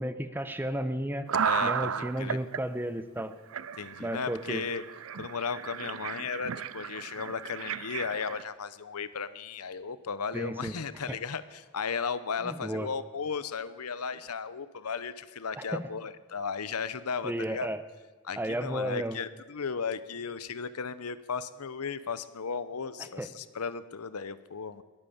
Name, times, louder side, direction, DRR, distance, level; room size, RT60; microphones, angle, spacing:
voice 1, 0.0-1.3 1.6-3.4 4.0-4.7 10.3-10.7 11.1-11.2 12.4-12.9 15.6-15.9 17.2-17.8 18.4-19.2 23.0-23.3, right 1 dB, 10° right, 11 dB, 0.7 m, -33 dB
sound 1, 1.3-2.6 3.2-3.3 3.5-8.4, right 7 dB, 65° right, 0.5 m, -34 dB
voice 2, 1.4-2.4 3.8-4.8 5.2-17.7 18.2-24.8, left 5 dB, 90° left, 15 dB, 0.8 m, -35 dB
21.5 x 9.0 x 7.1 m, 1.4 s
head